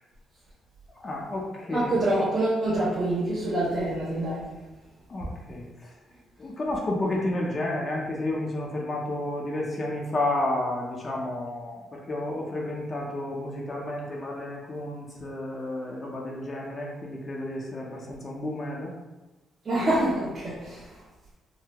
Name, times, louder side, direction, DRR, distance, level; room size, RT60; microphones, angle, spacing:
voice 1, 1.0-2.0 5.1-5.9 6.4-18.9, left 1 dB, 35° left, -2 dB, 0.6 m, -31 dB
voice 2, 1.7-4.4 19.6-21.0, right 1 dB, 40° right, -8 dB, 0.8 m, -26 dB
3.7 x 2.1 x 2.9 m, 1.1 s
cardioid pair, 90°, 0 cm